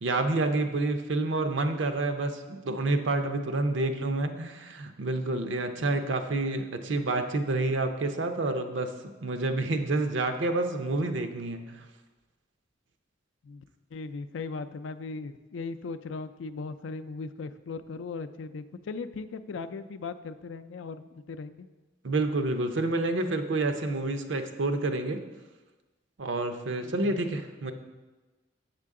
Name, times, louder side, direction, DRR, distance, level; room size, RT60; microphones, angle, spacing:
voice 1, 0.0-11.8 22.0-25.2 26.2-27.7, right 2 dB, 75° right, 7 dB, 0.6 m, -28 dB
voice 2, 13.9-21.7 26.8-27.2, left 4 dB, 80° left, 11 dB, 0.4 m, -38 dB
7.5 x 6.7 x 3.6 m, 1.2 s
head